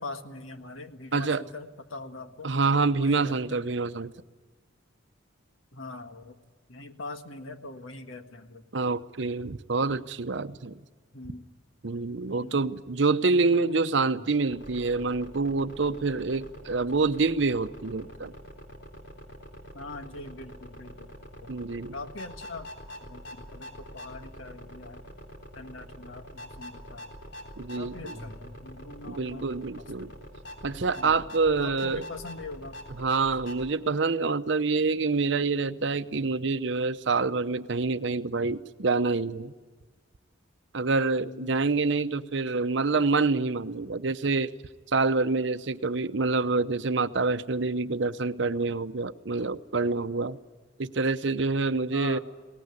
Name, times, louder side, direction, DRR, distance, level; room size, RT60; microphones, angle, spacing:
voice 1, 0.0-2.5 2.9-3.8 5.7-6.4 6.7-8.6 11.1-11.5 12.2-12.6 13.5-13.7 19.7-21.1 21.4-21.5 21.9-22.7 23.0-25.0 25.5-27.1 27.7-29.4 29.8-30.2 31.0-31.2 31.6-32.8 41.2-41.5 51.9-52.2, left 2 dB, 90° left, 7 dB, 1.6 m, -42 dB
voice 2, 1.1-1.4 2.4-4.1 8.7-10.8 11.8-18.3 21.5-21.9 27.6-28.1 29.1-30.1 30.6-32.0 33.0-39.5 40.7-44.5 44.9-50.4 50.8-52.2, right 3 dB, 65° right, 12 dB, 0.8 m, -27 dB
sound 1, 14.5-33.7, equal, 60° left, 3.6 m, -45 dB
21.5 x 18.5 x 9.7 m, 1.4 s
head